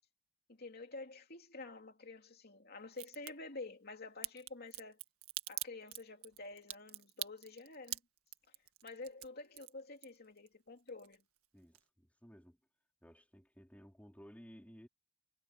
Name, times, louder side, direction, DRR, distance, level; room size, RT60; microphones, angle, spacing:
voice 1, 0.6-5.0 5.5-8.0 8.8-11.2, left 3 dB, 45° left, 2.9 m, -49 dB
Crack, 2.9-3.3 4.2-10.5 10.8-11.5 11.7-11.8, right 14 dB, 85° right, 1.7 m, -44 dB
voice 2, 11.5-12.6 13.0-14.9, equal, 5° left, 3.3 m, -57 dB
head